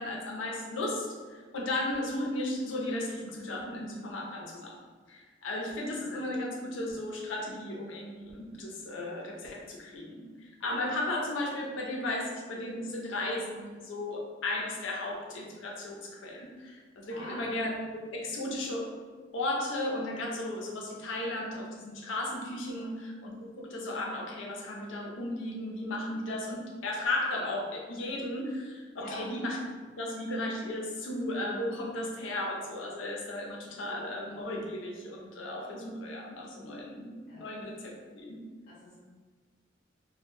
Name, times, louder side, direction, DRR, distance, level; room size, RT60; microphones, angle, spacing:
voice 1, 0.0-4.8 5.1-10.2 10.6-18.9 19.3-29.6 30.0-38.4, left 1 dB, 85° left, -1 dB, 0.5 m, -35 dB
voice 2, 17.1-17.5 22.7-23.0 29.0-29.3 37.3-37.6 38.7-38.9, left 1 dB, 40° left, -8 dB, 0.6 m, -45 dB
2.1 x 2.1 x 3.0 m, 1.5 s
head